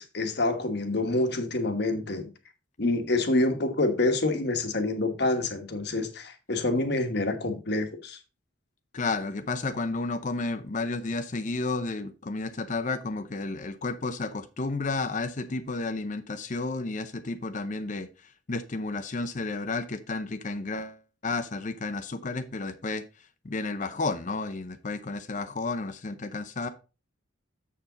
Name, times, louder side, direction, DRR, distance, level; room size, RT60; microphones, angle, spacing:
voice 1, 0.0-2.3 2.8-8.2, left 2 dB, 55° left, 1.2 m, -27 dB
voice 2, 8.9-18.1 18.5-21.0 21.2-23.0 23.4-26.7, left 3 dB, 40° left, 0.6 m, -32 dB
7.2 x 7.1 x 3.9 m
head